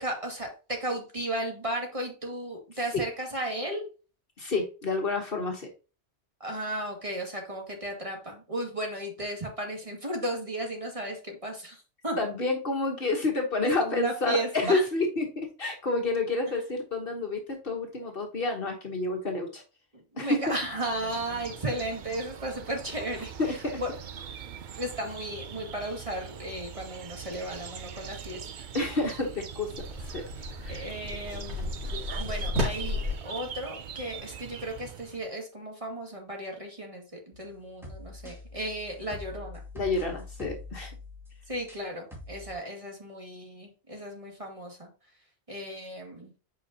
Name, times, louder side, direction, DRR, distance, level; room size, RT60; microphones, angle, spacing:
voice 1, 0.0-3.8 6.4-11.8 12.0-12.2 13.8-14.8 19.9-23.9 24.8-28.7 30.7-31.7 32.2-39.6 41.5-44.9 45.5-46.3, right 1 dB, 30° right, 1 dB, 2.2 m, -35 dB
voice 2, 4.4-5.7 12.2-19.6 20.2-20.4 23.4-23.8 28.7-29.8 30.1-30.2 30.6-30.8 39.7-40.9, left 3 dB, 60° left, 1 dB, 1.5 m, -29 dB
sound 1, 20.4-35.3, right 8 dB, 55° right, 0.7 m, -42 dB
sound 2, 29.8-33.1, left 2 dB, 90° right, 2.6 m, -33 dB
sound 3, 37.3-41.8 42.1-42.5, left 2 dB, ahead, 2.1 m, -44 dB
8.2 x 5.1 x 2.8 m, 0.34 s
omnidirectional pair, 1.1 m